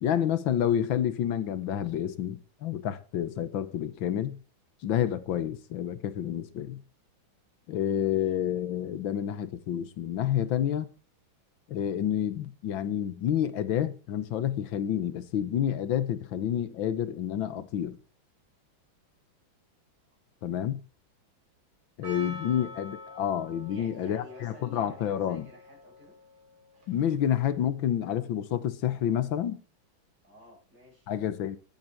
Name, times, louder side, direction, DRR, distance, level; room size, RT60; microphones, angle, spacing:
voice 1, 0.0-4.4 4.8-6.8 7.7-10.9 11.7-18.0 20.4-20.8 22.0-25.5 26.9-29.6 31.1-31.6, left 10 dB, 70° left, 1.8 m, -29 dB
voice 2, 7.9-8.3 22.2-22.5 23.7-26.2 30.2-31.1, left 2 dB, 50° right, 8.4 m, -53 dB
Percussion, 22.0-27.3, left 2 dB, 85° right, 4.7 m, -46 dB
14.0 x 10.5 x 4.5 m
omnidirectional pair, 2.2 m